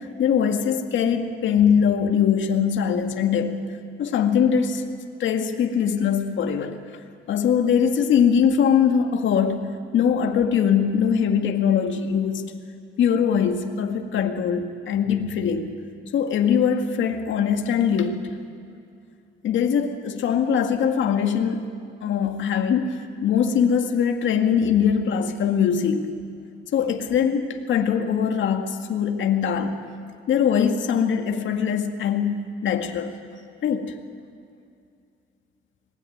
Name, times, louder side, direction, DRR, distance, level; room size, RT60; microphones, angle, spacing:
voice 1, 0.0-3.7 4.0-4.8 5.2-6.8 7.3-12.5 13.0-15.7 16.1-18.4 19.4-21.7 22.0-26.2 26.7-29.8 30.3-33.1 33.6-34.0, left 7 dB, 75° left, 4 dB, 2.0 m, -22 dB
25.5 x 20.0 x 9.4 m, 2.4 s
cardioid pair, 90°, 20 cm